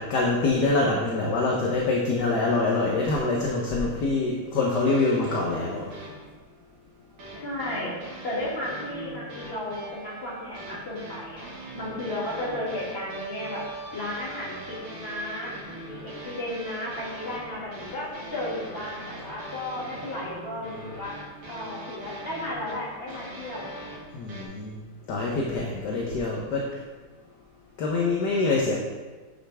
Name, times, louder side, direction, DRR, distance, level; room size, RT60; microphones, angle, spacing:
voice 1, 0.0-5.8 24.1-24.8 25.1-26.7 27.8-28.7, left 3 dB, 60° left, -2 dB, 1.4 m, -25 dB
sound 1, 4.8-6.3 7.2-24.4, right 1 dB, 80° right, 2.7 m, -41 dB
voice 2, 7.3-11.5 11.7-13.6 13.9-15.5 15.8-21.1 21.5-23.7, left 1 dB, 25° left, -7 dB, 2.6 m, -34 dB
9.7 x 6.4 x 3.5 m, 1.3 s
omnidirectional pair, 2.4 m